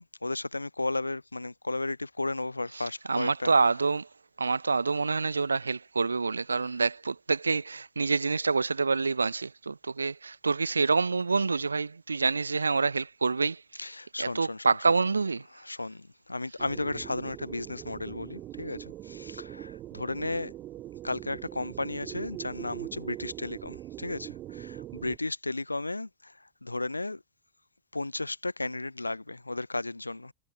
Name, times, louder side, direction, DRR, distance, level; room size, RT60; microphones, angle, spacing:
voice 1, 0.0-3.5 13.8-14.9 15.6-20.5 21.0-27.2 27.9-30.3, left 2 dB, 85° left, 0.7 m, -34 dB
voice 2, 2.8-4.1 4.4-13.9 14.2-15.5, right 4 dB, 75° right, 1.1 m, -27 dB
sound 1, 16.6-25.2, right 14 dB, 35° right, 3.0 m, -42 dB
figure-of-eight pair, 90°, 0 cm